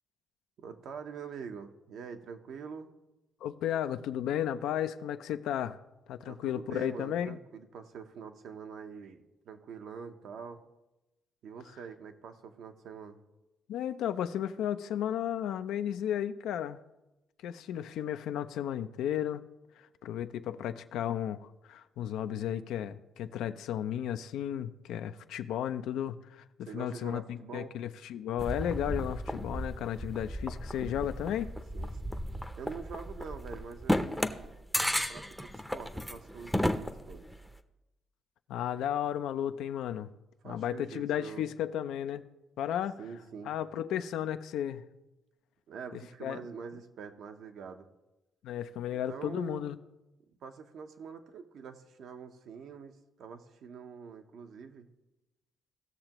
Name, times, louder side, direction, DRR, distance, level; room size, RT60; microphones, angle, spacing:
voice 1, 0.6-2.9 6.2-10.6 11.4-13.2 26.6-27.7 31.7-31.9 32.6-34.6 34.9-37.2 40.4-41.5 43.0-43.5 45.7-47.9 48.9-49.7 50.4-54.9, right 6 dB, 70° right, 6 dB, 0.9 m, -45 dB
voice 2, 3.4-5.8 6.1-7.4 13.7-16.8 17.4-19.4 19.8-31.5 38.5-40.1 40.4-42.2 42.6-43.0 43.4-44.8 46.2-46.4 48.4-49.8, left 10 dB, 85° left, 10 dB, 0.4 m, -34 dB
sound 1, 28.4-37.6, equal, ahead, 0.6 m, -34 dB
17.5 x 6.5 x 3.0 m, 1.0 s
cardioid pair, 90°, 0 cm